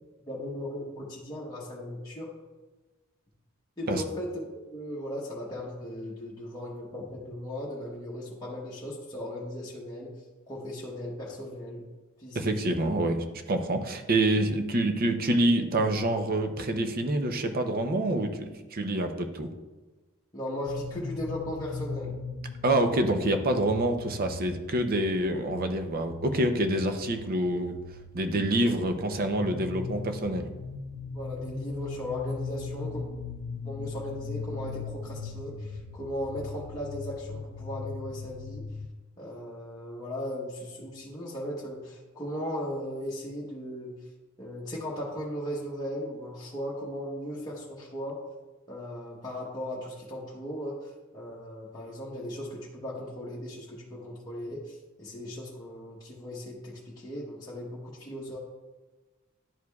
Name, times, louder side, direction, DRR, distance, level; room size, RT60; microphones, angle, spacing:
voice 1, 0.2-2.3 3.8-4.3 4.7-10.1 10.5-11.8 12.2-12.5 20.3-22.1 28.6-28.7 31.1-33.1 33.6-38.6 39.2-43.9 44.4-48.2 48.7-58.4, left 1 dB, 20° left, -7 dB, 1.0 m, -37 dB
voice 2, 12.3-19.5 22.6-27.8 28.1-30.5, right 1 dB, 45° right, 7 dB, 0.6 m, -27 dB
sound 1, 20.6-38.9, left 4 dB, 65° left, 0.4 m, -39 dB
10.5 x 4.8 x 2.3 m, 1.2 s
head